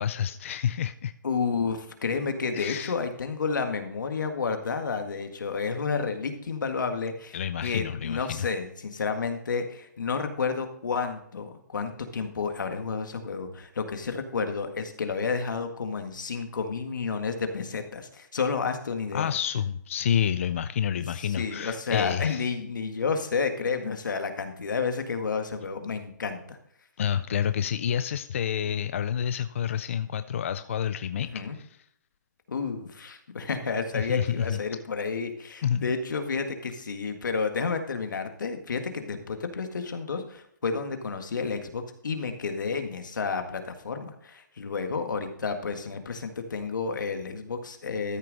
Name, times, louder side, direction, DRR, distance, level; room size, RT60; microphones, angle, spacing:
voice 1, 0.0-1.1 2.5-2.9 7.3-8.5 19.1-22.5 27.0-31.3 31.6-31.7 33.9-34.6 35.6-35.9, left 9 dB, 45° left, 11 dB, 0.4 m, -28 dB
voice 2, 1.2-7.4 7.6-19.3 20.9-26.6 31.2-31.6 32.5-48.2, left 5 dB, 85° left, 6 dB, 1.7 m, -31 dB
13.5 x 6.3 x 4.0 m, 0.71 s
hypercardioid pair, 170°, 10 cm